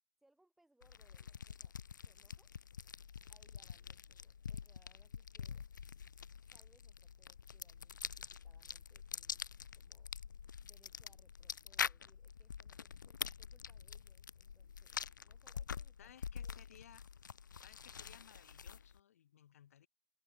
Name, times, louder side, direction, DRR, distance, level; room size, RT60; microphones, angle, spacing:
voice 1, 0.2-1.7 2.0-2.5 3.3-5.6 6.5-9.4 9.7-10.1 10.6-16.8, right 1 dB, ahead, 4.1 m, -74 dB
sound 1, 0.8-19.0, left 7 dB, 65° left, 0.4 m, -46 dB
voice 2, 16.0-17.0 17.6-19.9, left 10 dB, 45° left, 1.8 m, -61 dB
figure-of-eight pair, 140°, 11 cm